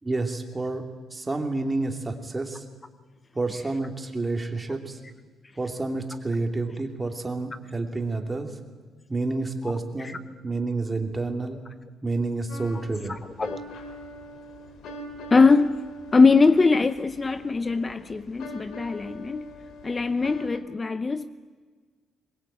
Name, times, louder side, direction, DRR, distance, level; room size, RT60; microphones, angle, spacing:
voice 1, 0.0-0.9 1.1-2.6 3.3-5.0 5.6-8.5 9.1-11.6 12.0-13.2, right 3 dB, 20° right, 4 dB, 2.8 m, -29 dB
voice 2, 3.5-3.8 9.6-9.7 10.0-10.2 12.7-12.8 13.1-13.6 15.3-15.8 16.1-19.5 19.8-21.3, left 4 dB, 25° left, 13 dB, 0.7 m, -22 dB
sound 1, 12.5-20.6, equal, 75° left, 3.1 m, -43 dB
22.0 x 21.0 x 8.9 m, 1.5 s
cardioid pair, 90°, 0 cm